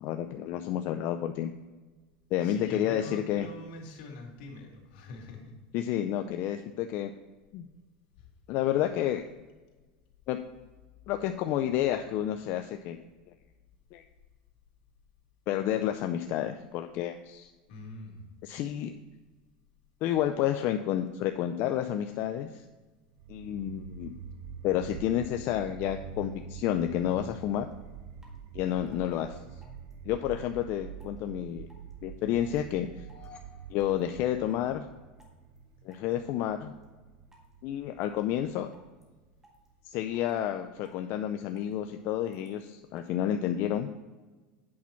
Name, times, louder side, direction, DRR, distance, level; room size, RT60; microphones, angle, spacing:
voice 1, 0.0-1.5 2.3-3.5 5.7-7.1 7.5-7.7 8.5-9.2 10.3-10.4 11.1-13.0 13.9-14.0 15.5-17.5 18.4-18.9 20.0-22.6 23.3-24.1 24.6-27.7 28.5-29.4 30.0-31.7 32.0-33.1 33.7-34.8 35.8-36.7 37.6-38.7 39.8-43.9, left 11 dB, 50° left, 6 dB, 0.4 m, -30 dB
voice 2, 2.4-5.5 17.7-18.3, left 2 dB, 75° left, 0 dB, 2.2 m, -44 dB
sound 1, 23.2-40.2, right 6 dB, 65° right, 0.6 m, -46 dB
sound 2, 27.7-27.8 28.2-28.4 28.9-29.1 29.6-29.9 30.3-30.6 31.0-31.2 31.7-31.9 32.3-32.7 33.1-33.3 33.8-34.0 34.5-34.7 35.2-35.6 35.9-36.1 36.5-36.8 37.3-37.5 38.0-38.4 38.7-39.0 39.4-39.7 40.1-40.4 40.8-41.0 41.3-41.8 42.3-42.5 43.0-43.1, equal, 10° right, 1.8 m, -60 dB
sound 3, 32.8-35.1, left 5 dB, 25° left, 1.2 m, -56 dB
8.5 x 5.8 x 4.3 m, 1.3 s
supercardioid pair, 135°, 5 cm